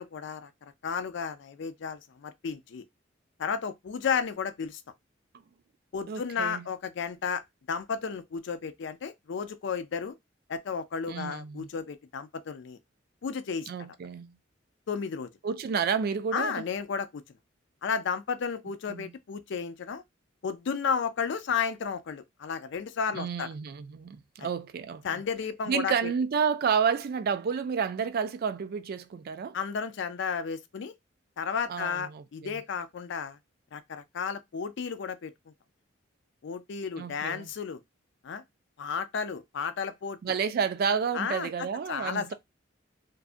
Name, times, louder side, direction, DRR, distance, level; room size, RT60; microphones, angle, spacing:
voice 1, 0.0-2.8 3.4-4.8 5.9-7.4 7.7-10.1 10.5-12.8 13.2-13.7 14.9-15.3 16.3-17.2 17.8-20.0 20.4-23.5 24.4-24.5 25.0-26.1 29.5-30.9 31.4-33.4 33.7-35.3 36.4-37.8 38.2-38.4 38.8-40.3 41.1-41.5 41.9-42.3, left 6 dB, 65° left, 0.4 m, -33 dB
voice 2, 6.1-6.7 11.1-11.7 13.7-14.4 15.4-16.6 18.9-19.1 23.1-25.2 25.7-29.6 31.7-32.6 37.0-37.5 40.2-42.3, right 6 dB, 50° right, 0.3 m, -30 dB
2.6 x 2.3 x 2.4 m
head